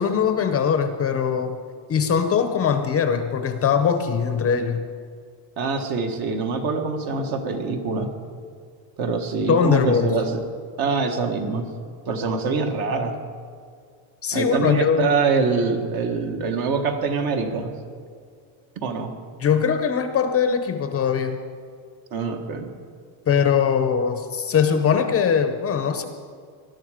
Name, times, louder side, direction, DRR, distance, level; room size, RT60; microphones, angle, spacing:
voice 1, 0.0-1.6 1.9-4.9 9.5-10.2 14.2-15.1 19.4-21.4 23.3-26.0, left 7 dB, 30° left, 8 dB, 0.7 m, -21 dB
voice 2, 5.6-8.1 9.0-10.4 10.8-11.7 12.1-13.1 14.3-17.7 18.8-19.1 22.1-22.7, right 4 dB, 45° right, 4 dB, 1.6 m, -24 dB
19.5 x 12.5 x 5.0 m, 2.1 s
cardioid pair, 160°, 49 cm